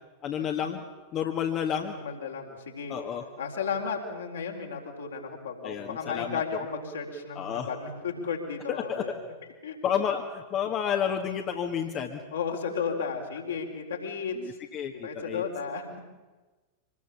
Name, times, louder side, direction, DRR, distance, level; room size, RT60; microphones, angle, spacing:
voice 1, 0.2-0.8 1.1-1.9 2.9-3.2 5.6-6.4 7.4-7.7 8.7-9.0 9.8-10.2 10.5-12.2 14.3-15.4, left 8 dB, 35° left, 3 dB, 1.7 m, -30 dB
voice 2, 1.8-2.9 3.4-9.1 9.6-9.8 12.3-14.4 15.0-16.0, left 5 dB, 70° left, 1 dB, 4.1 m, -34 dB
25.5 x 20.5 x 7.2 m, 1.2 s
figure-of-eight pair, 90°, 0 cm